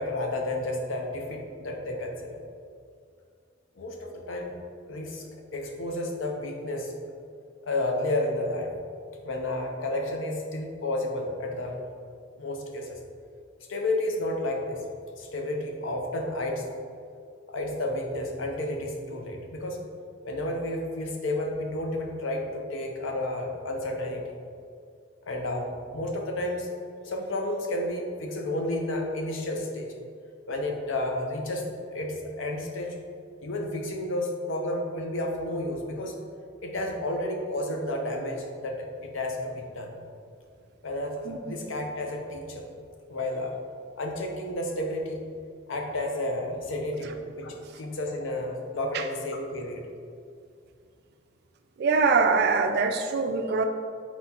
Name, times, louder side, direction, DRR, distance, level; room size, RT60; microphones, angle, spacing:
voice 1, 0.0-2.4 3.8-4.5 4.9-5.3 5.5-7.0 7.6-8.7 9.2-11.8 12.4-13.0 13.7-14.8 15.2-16.7 17.5-19.8 20.2-24.4 25.3-26.7 27.0-29.9 30.5-33.0 33.4-36.1 36.6-39.9 40.8-42.7 43.1-43.6 44.0-45.2 45.7-49.8, left 1 dB, 70° left, 2 dB, 0.6 m, -31 dB
voice 2, 51.8-53.6, right 4 dB, 55° right, 6 dB, 0.3 m, -23 dB
4.2 x 4.1 x 2.8 m, 2.3 s
head